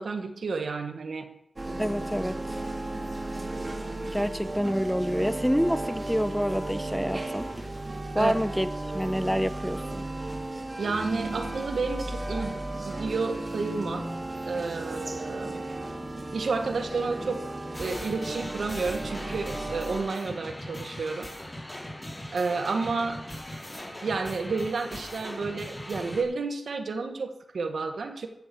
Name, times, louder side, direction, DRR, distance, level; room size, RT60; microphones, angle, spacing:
voice 1, 0.0-1.3 8.2-8.3 10.8-14.1 14.5-15.7 16.3-21.3 22.3-23.3 24.0-28.3, right 4 dB, 90° right, 6 dB, 1.3 m, -31 dB
sound 1, 1.6-20.0, right 2 dB, 40° right, 2.2 m, -35 dB
voice 2, 1.8-2.4 4.1-7.5 8.1-8.7 8.9-10.0, equal, ahead, 13 dB, 0.7 m, -27 dB
sound 2, 17.7-26.2, left 1 dB, 25° left, 4.9 m, -40 dB
15.0 x 7.2 x 6.8 m, 0.82 s
cardioid pair, 50°, 0 cm